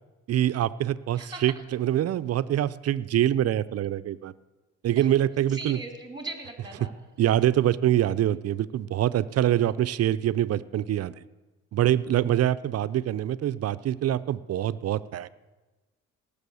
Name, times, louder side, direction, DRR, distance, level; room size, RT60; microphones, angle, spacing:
voice 1, 0.3-4.3 4.8-5.8 7.2-11.2 11.7-15.3, right 12 dB, 55° right, 16 dB, 0.5 m, -25 dB
voice 2, 1.2-1.6 5.0-5.1 5.5-6.9 9.6-9.7, right 2 dB, 15° right, 5 dB, 2.6 m, -39 dB
18.0 x 6.9 x 7.0 m, 1.2 s
cardioid pair, 90°, 30 cm